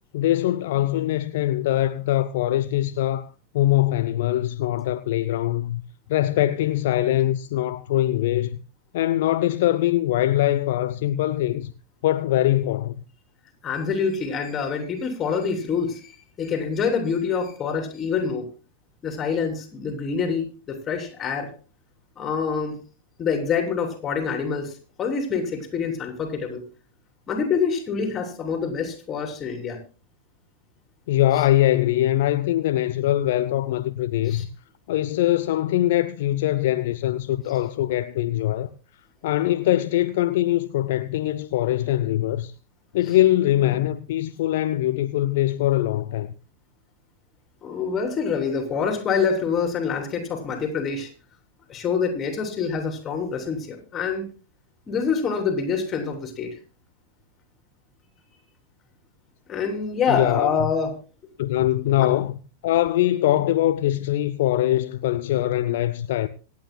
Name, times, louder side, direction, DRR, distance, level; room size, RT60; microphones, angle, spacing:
voice 1, 0.1-3.3 3.5-5.8 6.1-8.6 8.9-11.7 12.0-13.0 31.1-34.5 34.9-38.7 39.2-42.5 42.9-46.3 60.1-60.7 61.4-66.3, left 14 dB, 50° left, 0.5 m, -22 dB
voice 2, 13.6-18.5 19.0-21.5 22.2-22.8 23.2-26.6 27.3-29.8 31.4-31.5 34.3-34.4 47.6-51.1 51.7-54.2 54.9-56.5 59.5-60.9 62.0-62.1, left 6 dB, 25° left, 3.3 m, -26 dB
26.0 x 9.3 x 2.3 m
figure-of-eight pair, 95°, 0 cm